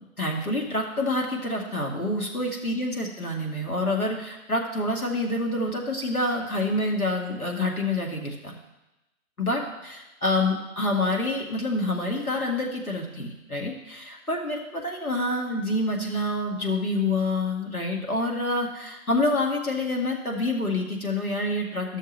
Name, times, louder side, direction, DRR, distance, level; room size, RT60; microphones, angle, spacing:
voice 1, 0.2-8.6 9.4-22.0, left 2 dB, 85° left, 0 dB, 2.0 m, -27 dB
13.0 x 6.4 x 3.3 m, 0.97 s
figure-of-eight pair, 135°, 42 cm